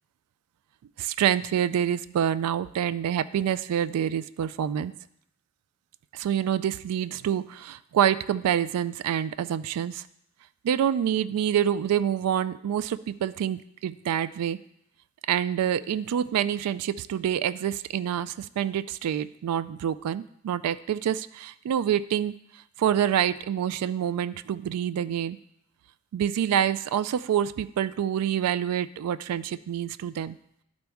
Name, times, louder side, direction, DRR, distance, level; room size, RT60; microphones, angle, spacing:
voice 1, 1.0-4.9 6.1-10.0 10.6-14.6 15.3-22.3 22.8-25.4 26.1-30.4, right 9 dB, 90° right, 15 dB, 0.3 m, -27 dB
11.5 x 4.0 x 3.5 m, 0.73 s
head